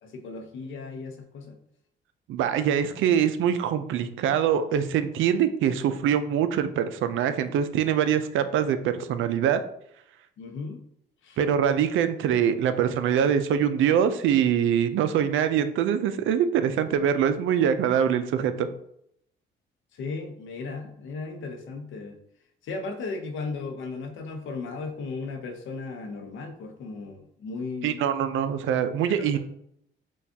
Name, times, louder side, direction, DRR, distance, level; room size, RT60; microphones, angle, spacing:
voice 1, 0.0-1.6 10.4-10.8 11.2-11.4 19.9-22.2 22.6-28.0 29.0-29.4, left 4 dB, 80° left, 5 dB, 0.8 m, -36 dB
voice 2, 2.3-9.6 11.4-18.7 27.8-29.4, right 8 dB, 80° right, 10 dB, 0.5 m, -24 dB
6.3 x 2.4 x 2.8 m, 0.72 s
cardioid pair, 90°, 20 cm